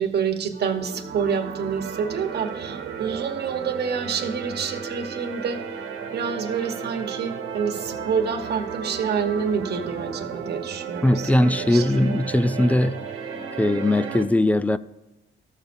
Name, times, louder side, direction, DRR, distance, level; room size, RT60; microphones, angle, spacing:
voice 1, 0.0-5.6 6.1-12.2, right 6 dB, 55° right, 1.2 m, -28 dB
sound 1, 0.5-14.2, right 6 dB, 90° right, 1.5 m, -34 dB
voice 2, 11.0-13.0 13.6-14.8, left 1 dB, 5° left, 0.3 m, -20 dB
14.5 x 6.6 x 2.6 m
cardioid pair, 90°, 20 cm